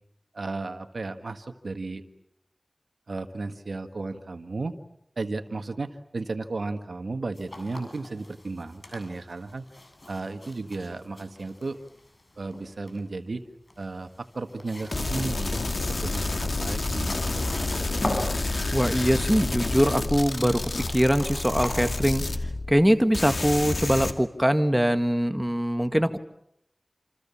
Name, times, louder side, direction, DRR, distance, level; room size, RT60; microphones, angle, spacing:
voice 1, 0.3-2.0 3.1-4.7 5.2-9.7 10.1-11.8 12.4-13.4 13.8-15.6 15.9-18.1, right 3 dB, 85° right, 8 dB, 1.8 m, -34 dB
sound 1, 7.3-22.0, left 1 dB, 50° left, 7.8 m, -40 dB
sound 2, 14.9-22.9 23.1-24.1, left 2 dB, 65° left, 2.3 m, -29 dB
voice 2, 18.7-22.2 22.7-26.2, equal, 5° right, 8 dB, 1.8 m, -23 dB
28.0 x 27.5 x 7.3 m, 0.74 s
wide cardioid pair, 60°, 0 cm